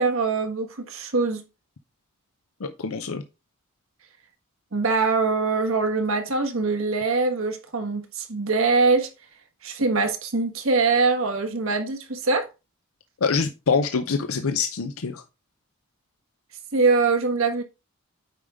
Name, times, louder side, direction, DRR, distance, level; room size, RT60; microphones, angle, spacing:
voice 1, 0.0-1.4 4.7-9.1 9.6-12.5 16.7-17.6, right 4 dB, 70° right, 1.4 m, -23 dB
voice 2, 2.6-3.2 13.2-15.2, left 5 dB, 75° left, 0.7 m, -25 dB
9.0 x 5.0 x 3.5 m
head